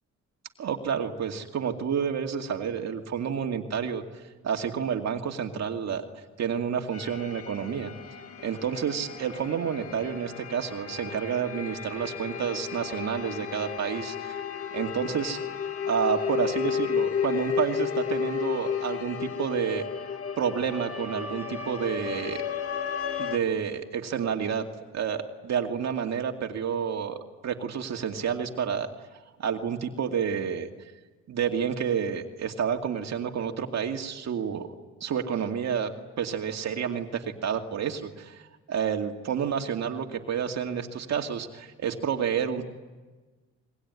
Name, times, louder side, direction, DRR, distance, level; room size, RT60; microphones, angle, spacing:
voice 1, 0.6-4.0 4.4-6.0 6.4-7.9 8.4-14.4 14.7-15.4 15.9-19.8 20.4-22.4 23.2-24.6 24.9-27.2 27.4-28.9 29.4-30.7 31.3-34.7 35.0-35.9 36.2-42.7, right 7 dB, 60° right, 3 dB, 2.4 m, -29 dB
sound 1, 6.9-23.4, left 7 dB, 50° left, 2.2 m, -33 dB
25.5 x 22.5 x 9.7 m, 1.3 s
cardioid pair, 90°, 30 cm